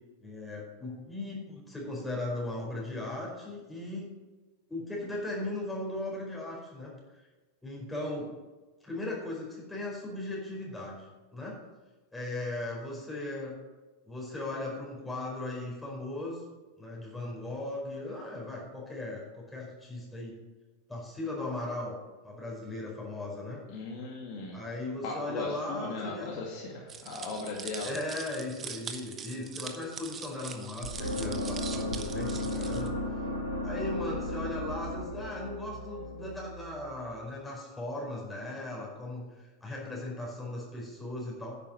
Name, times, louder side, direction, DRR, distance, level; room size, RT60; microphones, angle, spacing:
voice 1, 0.2-4.1 4.7-6.9 7.6-8.3 8.8-11.6 12.1-13.6 14.1-16.4 16.7-20.4 20.9-22.0 22.2-23.6 24.5-26.3 27.8-32.9 33.6-41.6, left 2 dB, 5° left, -4 dB, 4.9 m, -37 dB
voice 2, 23.7-24.6 25.0-28.0, left 3 dB, 45° left, -1 dB, 2.0 m, -37 dB
sound 1, 26.9-32.9, right 6 dB, 25° right, 1.1 m, -43 dB
sound 2, 30.8-36.9, left 1 dB, 85° left, 3.4 m, -35 dB
10.5 x 8.9 x 6.4 m, 1.2 s
figure-of-eight pair, 90°, 0 cm